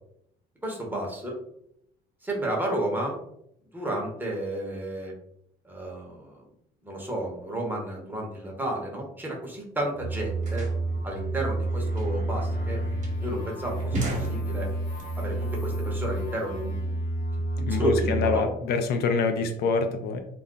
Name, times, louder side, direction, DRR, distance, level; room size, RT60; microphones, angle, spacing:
voice 1, 0.6-1.4 2.2-3.2 3.7-5.1 5.6-6.4 6.8-10.7 11.0-12.8 13.2-14.7 15.2-17.0 17.6-18.5, right 1 dB, 10° right, -2 dB, 0.9 m, -32 dB
sound 1, 9.9-18.3, right 2 dB, 55° left, 1.1 m, -30 dB
sound 2, 9.9-15.0, right 2 dB, 45° right, 1.1 m, -36 dB
voice 2, 17.6-20.2, left 4 dB, 70° left, 6 dB, 0.4 m, -25 dB
2.4 x 2.1 x 3.7 m, 0.73 s
cardioid pair, 110°, 17 cm